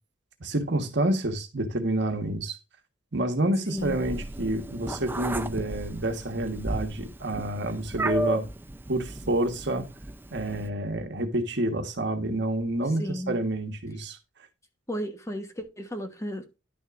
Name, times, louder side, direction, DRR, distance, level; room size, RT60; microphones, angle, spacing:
voice 1, 0.4-2.6 3.1-8.5 8.9-9.9 10.3-14.2, right 1 dB, 65° right, 1.4 m, -28 dB
voice 2, 3.7-4.0 13.0-13.4 14.9-16.4, equal, 15° left, 1.2 m, -34 dB
Meow, 3.8-10.7, right 1 dB, 10° right, 0.5 m, -34 dB
10.5 x 6.3 x 2.5 m
head